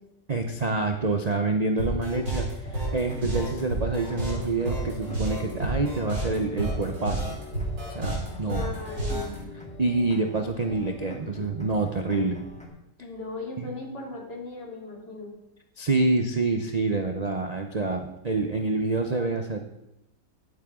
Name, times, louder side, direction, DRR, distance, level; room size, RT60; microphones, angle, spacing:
voice 1, 0.3-7.4 7.9-8.6 9.8-12.4 13.6-13.7 15.8-19.6, right 3 dB, 60° right, 4 dB, 0.4 m, -27 dB
sound 1, 1.8-9.4, right 1 dB, 75° right, 4.9 m, -30 dB
sound 2, 2.6-12.7, left 1 dB, 5° left, 1.6 m, -43 dB
voice 2, 8.4-9.3 13.0-15.3, left 2 dB, 70° left, -3 dB, 3.4 m, -37 dB
14.5 x 8.8 x 3.7 m, 0.88 s
omnidirectional pair, 1.9 m